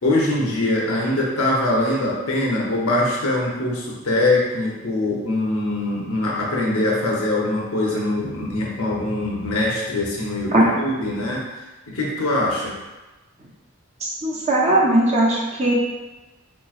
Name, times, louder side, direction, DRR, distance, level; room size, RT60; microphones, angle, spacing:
voice 1, 0.0-11.4 11.9-12.8, left 2 dB, 90° left, -4 dB, 0.8 m, -22 dB
voice 2, 14.0-15.7, right 1 dB, 30° right, -4 dB, 0.5 m, -18 dB
4.4 x 3.0 x 2.4 m, 1.1 s
head